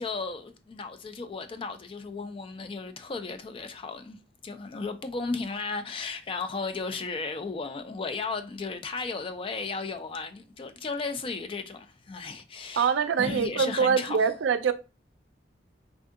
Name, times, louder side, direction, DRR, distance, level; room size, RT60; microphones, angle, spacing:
voice 1, 0.0-14.3, left 4 dB, 30° left, 0.3 m, -35 dB
voice 2, 12.8-14.7, right 6 dB, 85° right, 0.4 m, -24 dB
3.5 x 2.6 x 2.3 m
head